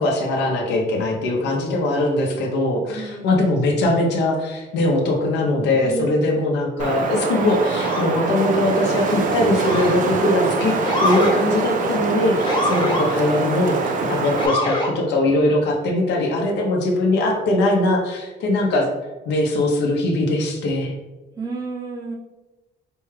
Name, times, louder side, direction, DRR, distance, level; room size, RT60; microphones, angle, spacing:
voice 1, 0.0-10.7 11.0-18.9 19.3-20.9, left 1 dB, 80° left, 0 dB, 0.7 m, -21 dB
voice 2, 2.9-3.7 5.8-6.5 21.4-22.1, right 3 dB, 20° right, -5 dB, 0.8 m, -32 dB
Wind, 6.8-14.5, right 4 dB, 50° right, 0.4 m, -24 dB
Motor vehicle (road) / Siren, 7.8-8.2 9.6-10.1 10.9-11.3 12.5-13.0 14.4-14.9, left 1 dB, 25° left, 1.1 m, -23 dB
4.4 x 2.3 x 3.2 m, 1.1 s
cardioid pair, 140°, 18 cm